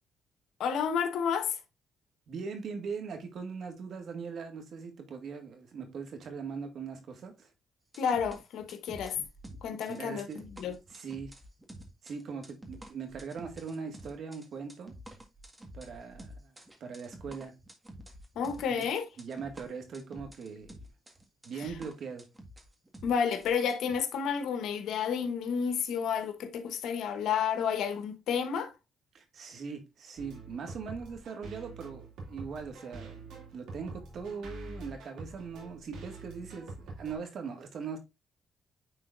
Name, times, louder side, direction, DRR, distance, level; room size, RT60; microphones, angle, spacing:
voice 1, 0.6-1.6 8.0-9.2 9.6-10.8 18.3-19.0 23.0-28.7, left 7 dB, 80° left, 1.1 m, -31 dB
voice 2, 2.3-7.5 9.7-10.5 10.9-11.3 12.0-14.9 15.7-16.5 16.8-17.5 18.7-18.9 19.2-20.8 21.4-22.3 29.1-38.0, right 5 dB, 65° right, 1.8 m, -40 dB
sound 1, 7.9-24.0, equal, 15° right, 1.7 m, -49 dB
sound 2, 30.2-37.2, right 3 dB, 85° right, 2.5 m, -46 dB
9.5 x 3.9 x 2.5 m
cardioid pair, 90°, 0 cm